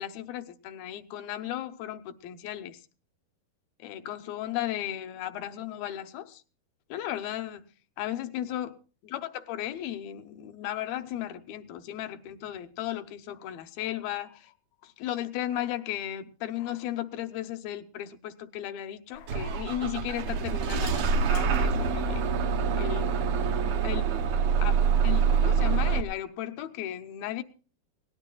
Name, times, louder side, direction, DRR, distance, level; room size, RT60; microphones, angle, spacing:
voice 1, 0.0-2.8 3.8-6.4 6.9-7.6 8.0-8.8 9.0-14.5 14.8-22.2 22.8-23.4 23.8-24.2 24.6-27.4, left 12 dB, 80° left, 2.6 m, -35 dB
Bus / Engine starting, 19.3-26.0, right 6 dB, 75° right, 1.5 m, -25 dB
22.0 x 18.0 x 2.3 m
omnidirectional pair, 4.3 m